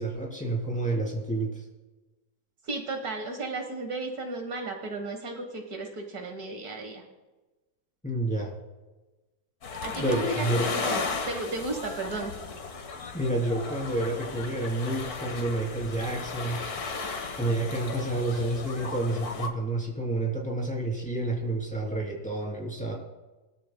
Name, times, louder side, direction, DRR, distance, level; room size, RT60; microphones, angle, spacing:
voice 1, 0.0-1.6 8.0-8.5 9.9-10.6 13.1-16.6 17.4-22.9, right 2 dB, 5° left, -2 dB, 3.0 m, -29 dB
voice 2, 2.6-7.0 9.8-12.3, right 2 dB, 65° right, 4 dB, 1.9 m, -34 dB
sound 1, 9.6-19.5, left 4 dB, 65° left, 1.7 m, -35 dB
21.5 x 13.5 x 2.2 m, 1.2 s
omnidirectional pair, 1.7 m